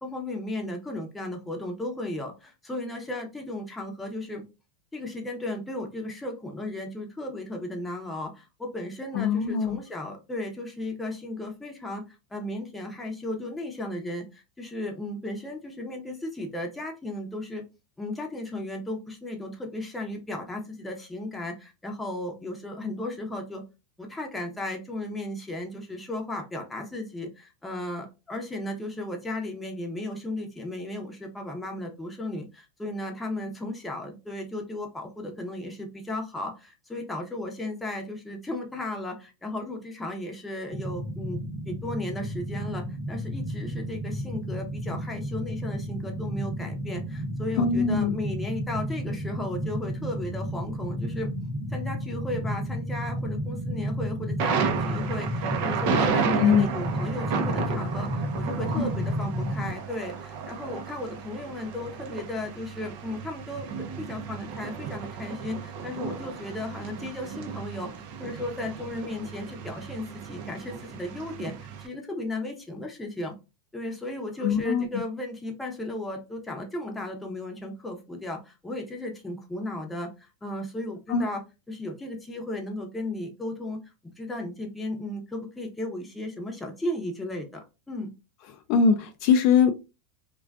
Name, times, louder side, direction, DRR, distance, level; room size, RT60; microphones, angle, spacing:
voice 1, 0.0-4.4 4.9-12.0 12.3-17.6 18.0-23.6 24.0-41.4 41.7-51.3 51.7-63.7 64.0-67.9 68.2-73.3 73.7-81.4 81.7-83.8 84.2-88.1, left 1 dB, 10° left, 1 dB, 0.7 m, -35 dB
voice 2, 9.1-9.8 47.6-48.2 56.4-56.7 58.7-58.9 74.4-74.9 81.1-81.3 88.7-89.7, left 6 dB, 55° left, 7 dB, 0.3 m, -22 dB
sound 1, 40.7-59.7, equal, 30° right, 0.9 m, -32 dB
Thunder, 54.4-71.9, right 6 dB, 60° right, 0.5 m, -33 dB
2.4 x 2.2 x 2.4 m, 0.27 s
supercardioid pair, 125°, 0 cm